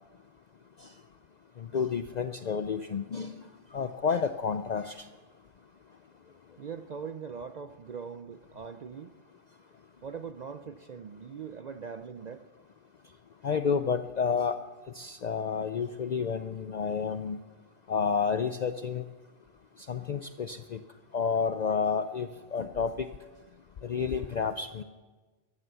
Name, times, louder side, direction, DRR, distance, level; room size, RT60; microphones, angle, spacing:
voice 1, 1.6-3.3 3.7-5.1 13.4-14.5 14.9-17.4 17.9-19.0 19.9-20.8 21.1-23.1 23.8-24.8, left 6 dB, 60° left, 10 dB, 0.4 m, -30 dB
voice 2, 6.6-9.1 10.0-12.5, right 6 dB, 55° right, 9 dB, 0.5 m, -41 dB
14.0 x 11.0 x 6.9 m, 1.3 s
omnidirectional pair, 1.3 m